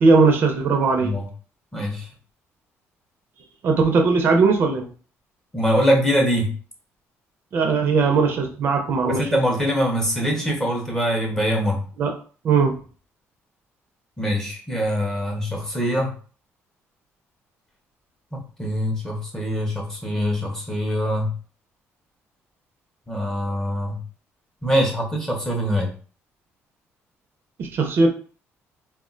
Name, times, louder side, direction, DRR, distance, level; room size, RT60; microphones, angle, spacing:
voice 1, 0.0-1.2 3.6-4.9 7.5-9.3 12.0-12.1 12.4-12.8 27.6-28.1, right 4 dB, 45° right, 3 dB, 0.5 m, -19 dB
voice 2, 1.0-1.3 1.7-2.1 5.5-6.5 9.1-11.8 14.2-16.1 18.3-21.3 23.1-24.0 24.6-25.9, equal, 10° left, 0 dB, 0.6 m, -23 dB
2.2 x 2.1 x 3.7 m, 0.40 s
cardioid pair, 150°, 5 cm